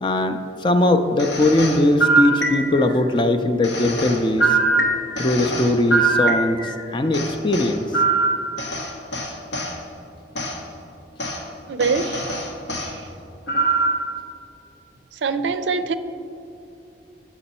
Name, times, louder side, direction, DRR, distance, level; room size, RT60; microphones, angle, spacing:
voice 1, 0.0-4.6 5.2-8.0, left 1 dB, 25° left, 7 dB, 0.4 m, -20 dB
sound 1, 1.2-3.0 3.6-6.8 7.1-9.7 10.3-10.6 11.2-11.4 11.8-12.9 13.5-14.1, right 3 dB, 75° left, 1.0 m, -22 dB
voice 2, 11.7-12.4 12.8-13.1 15.1-16.0, right 4 dB, 85° right, 11 dB, 0.4 m, -24 dB
8.9 x 6.0 x 4.2 m, 2.8 s
head